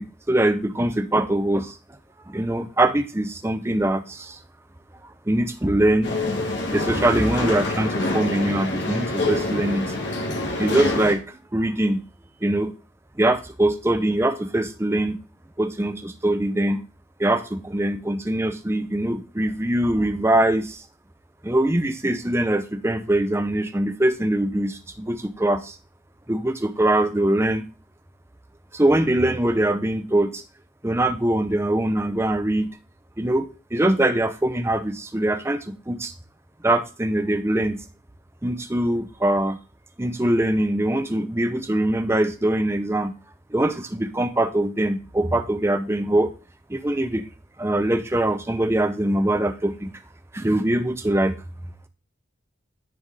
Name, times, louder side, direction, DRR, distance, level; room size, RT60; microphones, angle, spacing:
voice 1, 0.0-1.8 2.3-4.4 5.3-6.1 6.7-9.9 10.6-12.0 12.4-12.7 13.2-15.2 15.6-16.8 17.2-20.8 21.4-25.8 26.3-27.6 28.7-30.4 30.8-32.7 33.2-36.1 36.6-37.8 38.4-39.6 40.0-43.1 43.5-46.3 46.7-47.2 47.6-49.9 50.3-51.4, right 1 dB, 15° right, 8 dB, 0.6 m, -22 dB
sound 1, 6.0-11.1, left 2 dB, 75° left, 1.5 m, -26 dB
10.5 x 4.4 x 3.2 m, 0.33 s
head